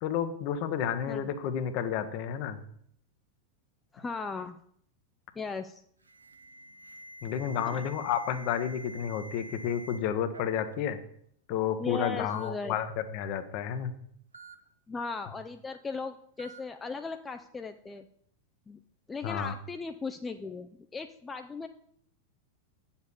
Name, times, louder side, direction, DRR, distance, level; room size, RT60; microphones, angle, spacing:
voice 1, 0.0-2.6 7.2-11.0 11.5-13.9 19.2-19.5, left 8 dB, 45° left, 10 dB, 0.9 m, -31 dB
voice 2, 3.9-4.6 5.4-5.8 7.6-7.8 11.8-12.8 14.9-18.0 18.7-18.8 19.1-21.7, left 4 dB, 15° left, 7 dB, 0.4 m, -37 dB
Alarm, 6.0-10.0 10.3-10.7 11.6-11.7 12.3-12.5 14.3-14.6 16.4-16.6, right 1 dB, 80° right, 0.8 m, -47 dB
9.2 x 7.1 x 4.1 m, 0.65 s
figure-of-eight pair, 90°, 0 cm